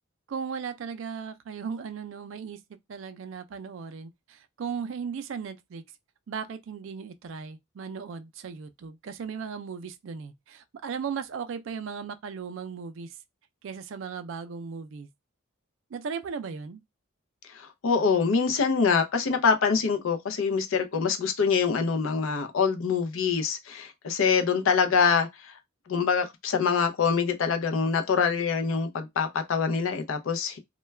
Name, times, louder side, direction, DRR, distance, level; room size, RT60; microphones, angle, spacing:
voice 1, 0.3-2.6 2.9-5.8 6.3-13.2 13.6-15.1 15.9-16.8, right 6 dB, 65° right, 0.4 m, -37 dB
voice 2, 17.5-25.5 25.9-30.6, left 5 dB, 70° left, 0.5 m, -25 dB
2.2 x 2.2 x 3.1 m
head